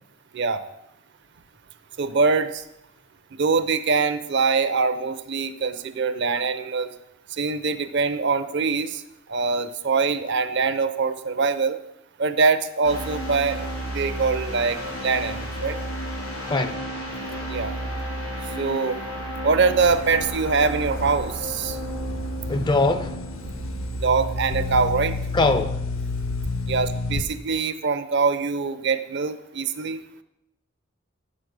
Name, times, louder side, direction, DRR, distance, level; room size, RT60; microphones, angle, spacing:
voice 1, 2.0-2.6 3.4-6.9 7.3-9.0 9.3-11.8 12.2-15.8 17.5-17.7 18.5-19.0 19.4-21.8 24.0-25.2 26.7-30.0, right 4 dB, 55° right, 0.6 m, -23 dB
sound 1, 12.8-24.9, right 1 dB, 90° left, 4.1 m, -32 dB
voice 2, 16.5-16.9 22.5-23.2 25.3-25.8, left 3 dB, 20° left, 0.4 m, -22 dB
sound 2, 19.8-27.2, left 3 dB, 65° left, 0.7 m, -31 dB
7.9 x 6.2 x 6.6 m
head